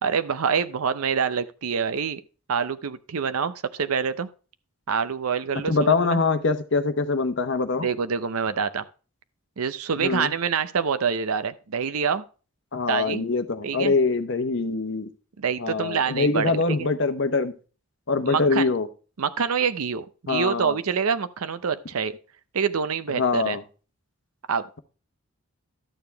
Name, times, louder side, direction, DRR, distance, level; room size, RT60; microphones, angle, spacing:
voice 1, 0.0-2.2 2.5-4.3 4.9-6.2 7.8-8.8 9.6-12.2 12.9-13.2 13.6-13.9 15.4-16.9 18.2-18.7 19.2-22.2 22.5-23.6 24.5-24.6, right 6 dB, 85° right, 0.6 m, -26 dB
voice 2, 5.7-7.9 10.0-10.3 12.7-15.1 15.6-17.5 18.1-18.9 20.3-20.8 23.1-23.6, left 4 dB, 55° left, 0.9 m, -24 dB
12.5 x 6.9 x 3.4 m
head